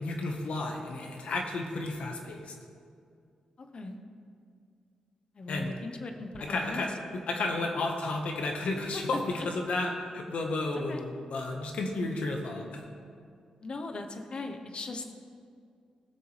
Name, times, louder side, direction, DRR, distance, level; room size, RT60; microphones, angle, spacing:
voice 1, 0.0-2.5 5.5-5.7 6.4-12.8, left 2 dB, 75° left, 2 dB, 1.4 m, -32 dB
voice 2, 3.6-4.0 5.3-6.8 8.9-9.5 10.9-11.0 13.6-15.0, left 2 dB, 50° left, 6 dB, 1.0 m, -39 dB
18.0 x 6.8 x 3.4 m, 2.3 s
cardioid pair, 75°, 2 cm